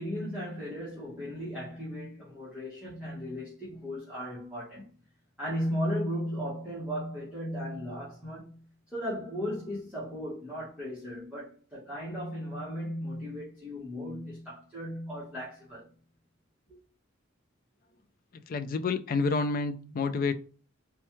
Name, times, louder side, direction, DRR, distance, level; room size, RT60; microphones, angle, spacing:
voice 1, 0.0-4.9 5.4-8.6 8.9-15.9, equal, 5° right, 1.2 m, -36 dB
voice 2, 18.5-20.3, left 4 dB, 45° left, 0.4 m, -29 dB
4.3 x 2.3 x 3.0 m
head